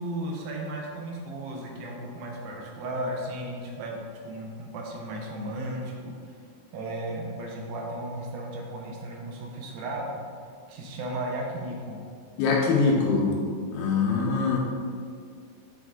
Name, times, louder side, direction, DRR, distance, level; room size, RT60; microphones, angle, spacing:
voice 1, 0.0-4.0 4.2-6.3 6.7-10.2 10.7-12.0, right 1 dB, 80° right, -1 dB, 2.5 m, -35 dB
voice 2, 12.4-13.3 13.7-14.6, left 4 dB, 85° left, -1 dB, 2.7 m, -23 dB
7.9 x 3.5 x 3.7 m, 2.2 s
omnidirectional pair, 4.3 m